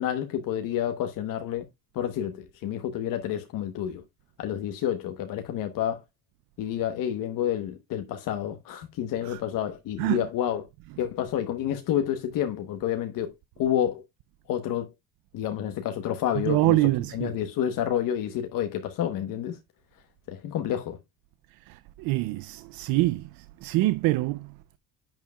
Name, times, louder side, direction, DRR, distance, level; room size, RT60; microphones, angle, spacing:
voice 1, 0.0-1.7 1.9-4.0 4.4-6.0 6.6-10.7 11.0-13.3 13.6-14.0 14.5-14.9 15.3-16.8 17.1-19.6 20.3-21.0, left 10 dB, 65° left, 1.1 m, -29 dB
voice 2, 16.4-17.3 21.7-24.8, right 18 dB, 75° right, 0.5 m, -26 dB
10.5 x 7.3 x 2.3 m
cardioid pair, 140°, 35 cm